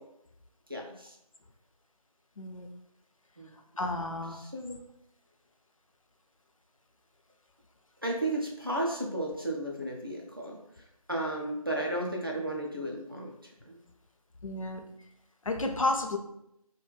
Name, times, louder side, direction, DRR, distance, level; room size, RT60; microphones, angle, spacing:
voice 1, 0.7-1.2 3.4-3.5 4.3-4.8 8.0-13.3 13.7-13.8, right 1 dB, 40° right, -2 dB, 0.4 m, -34 dB
voice 2, 2.4-2.7 3.8-4.4 14.4-14.8 15.5-16.2, left 2 dB, 60° left, 4 dB, 0.4 m, -31 dB
2.1 x 2.0 x 3.2 m, 0.78 s
figure-of-eight pair, 170°, 19 cm